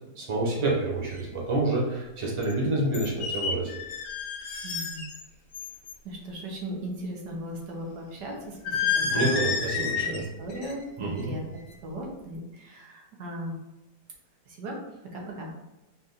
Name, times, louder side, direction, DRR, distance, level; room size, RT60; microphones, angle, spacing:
voice 1, 0.1-3.7 9.0-10.2 11.0-11.3, right 2 dB, 20° right, -3 dB, 0.9 m, -28 dB
sound 1, 1.1-1.2 2.4-2.5 2.9-5.2 5.5-5.9 8.6-10.2 10.5-10.8 11.2-11.5, left 5 dB, 60° left, 0.9 m, -30 dB
voice 2, 4.6-5.1 6.0-11.4 11.8-13.6 14.5-14.8 15.1-15.5, equal, 80° right, -1 dB, 1.6 m, -38 dB
4.2 x 2.5 x 4.0 m, 0.98 s
omnidirectional pair, 1.8 m